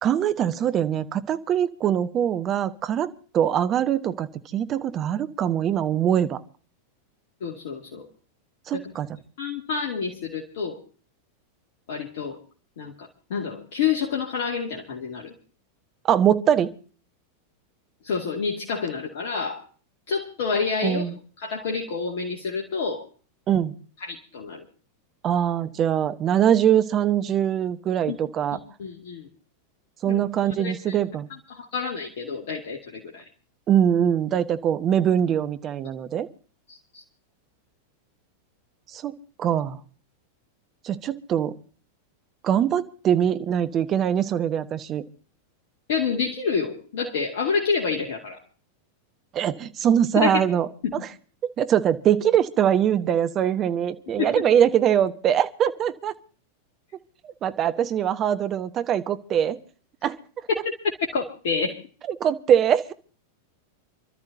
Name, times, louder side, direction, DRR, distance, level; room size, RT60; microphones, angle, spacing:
voice 1, 0.0-4.3 4.5-6.4 8.7-9.2 16.1-16.7 20.8-21.2 23.5-23.7 25.2-28.6 30.0-31.3 33.7-36.3 38.9-39.1 39.4-39.8 40.8-41.5 42.4-45.0 49.3-51.0 51.6-56.1 57.4-59.6 60.0-60.2 62.1-62.9, right 9 dB, 30° right, 11 dB, 1.2 m, -22 dB
voice 2, 7.4-8.1 8.7-8.8 9.4-10.8 11.9-12.4 12.8-15.3 18.0-19.6 20.1-21.0 21.4-23.0 24.0-24.6 28.1-28.2 28.5-29.3 30.1-30.2 30.6-31.0 31.5-33.2 36.9-37.0 45.9-48.4 50.2-50.4 50.8-51.0 54.2-54.5 61.1-61.8, left 5 dB, 55° left, 0 dB, 2.3 m, -28 dB
29.0 x 13.0 x 2.8 m, 0.41 s
figure-of-eight pair, 90°, 0 cm